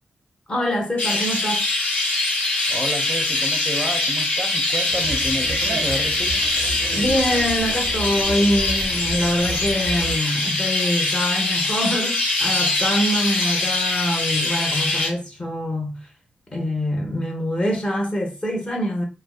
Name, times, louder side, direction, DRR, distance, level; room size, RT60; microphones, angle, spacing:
voice 1, 0.5-1.6 6.9-16.0 16.5-19.0, equal, 30° left, 0.8 m, -24 dB
Chirp tweet, 1.0-15.1, left 2 dB, 70° left, 0.9 m, -23 dB
voice 2, 2.7-6.4, right 1 dB, 15° right, 0.6 m, -30 dB
Conversation, 4.9-10.2, right 3 dB, 90° right, 0.5 m, -32 dB
2.6 x 2.1 x 2.3 m
cardioid pair, 70°, 3 cm